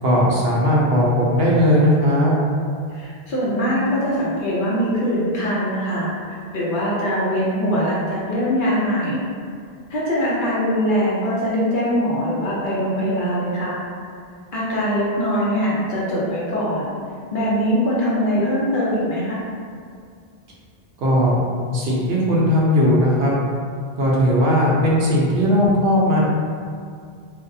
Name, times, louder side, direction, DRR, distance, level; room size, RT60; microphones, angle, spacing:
voice 1, 0.0-2.3 21.0-21.4 21.7-23.3 24.0-26.2, equal, 75° right, -5 dB, 0.8 m, -17 dB
voice 2, 2.9-6.1 6.5-9.2 9.9-13.8 14.5-16.9 17.3-19.4, equal, 55° left, -7 dB, 0.8 m, -22 dB
2.6 x 2.0 x 2.6 m, 2.2 s
omnidirectional pair, 1.0 m